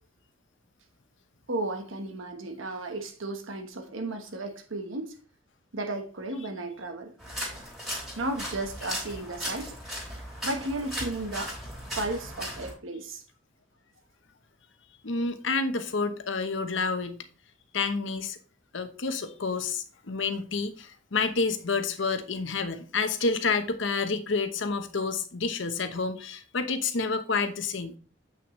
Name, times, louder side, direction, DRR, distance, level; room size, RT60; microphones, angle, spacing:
voice 1, 1.5-5.2 5.7-7.1 8.1-9.7 10.4-11.6 12.0-13.2, right 2 dB, 80° right, 1.1 m, -34 dB
sound 1, 7.2-12.7, equal, ahead, 3.0 m, -37 dB
voice 2, 15.0-17.2 17.7-18.4 18.7-27.9, left 4 dB, 70° left, 0.9 m, -29 dB
8.1 x 6.0 x 3.1 m
head